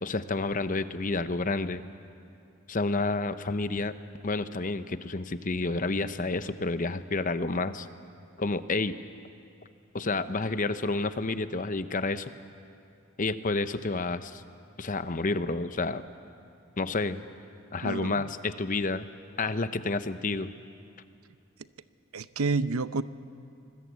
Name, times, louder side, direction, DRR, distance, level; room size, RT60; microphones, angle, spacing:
voice 1, 0.0-1.8 2.7-3.9 4.2-7.9 8.4-9.0 9.9-12.3 13.2-14.4 14.8-16.0 16.8-17.2 17.7-19.1 19.4-20.5, left 3 dB, 40° left, 11 dB, 0.8 m, -29 dB
voice 2, 17.8-18.3 22.1-23.0, right 4 dB, 85° right, 14 dB, 0.7 m, -29 dB
25.5 x 21.0 x 8.3 m, 2.5 s
head